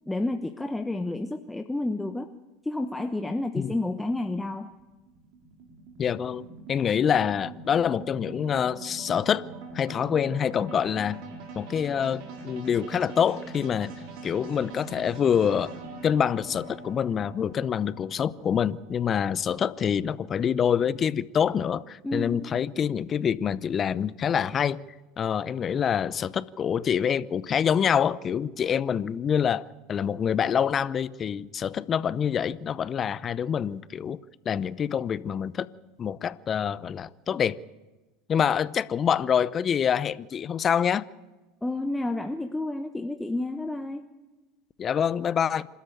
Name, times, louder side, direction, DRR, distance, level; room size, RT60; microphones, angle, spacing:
voice 1, 0.1-2.3 2.6-4.7 22.0-22.5 41.6-44.1, left 2 dB, 10° left, 1.1 m, -30 dB
sound 1, 4.1-20.5, right 3 dB, 60° right, 4.7 m, -43 dB
voice 2, 6.0-9.4 9.7-11.2 11.6-13.9 14.2-15.7 16.0-24.8 25.2-34.2 34.5-35.7 36.0-37.6 38.3-41.0 44.8-45.7, left 8 dB, 35° left, 0.7 m, -26 dB
26.5 x 13.0 x 9.0 m
hypercardioid pair, 85°, 0 cm